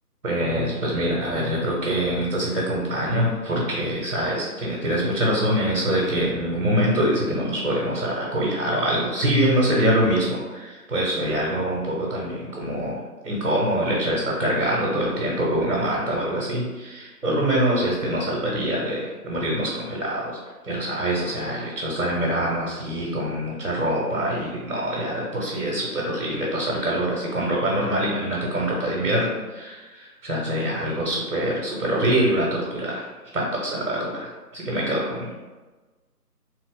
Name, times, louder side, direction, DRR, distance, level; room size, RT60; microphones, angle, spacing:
voice 1, 0.2-13.0 13.2-20.4 20.6-33.0 33.3-35.3, right 1 dB, 60° right, -3 dB, 0.9 m, -24 dB
3.0 x 2.3 x 3.7 m, 1.3 s
figure-of-eight pair, 160°, 46 cm